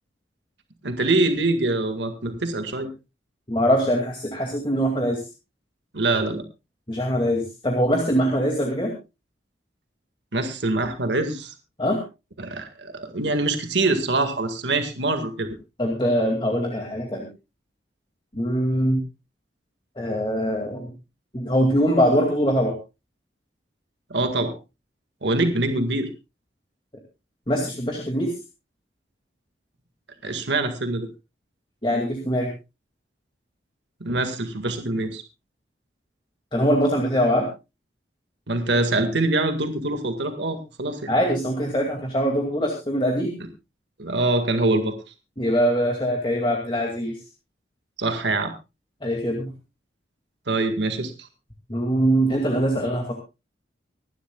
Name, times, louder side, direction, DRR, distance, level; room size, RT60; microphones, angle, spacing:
voice 1, 0.8-2.9 5.9-6.4 10.3-11.5 12.4-15.6 24.1-24.5 25.2-26.1 30.2-31.1 34.0-35.2 38.5-41.1 44.0-45.0 48.0-48.5 50.5-51.1, right 2 dB, 75° right, 7 dB, 1.8 m, -24 dB
voice 2, 3.5-5.2 6.9-8.9 11.8-12.0 15.8-17.3 18.3-19.0 20.0-20.9 21.3-22.8 27.5-28.3 31.8-32.5 36.5-37.5 41.1-43.3 45.4-47.2 49.0-49.5 51.7-53.1, equal, 25° left, 1 dB, 2.3 m, -22 dB
25.0 x 11.5 x 2.3 m, 0.27 s
head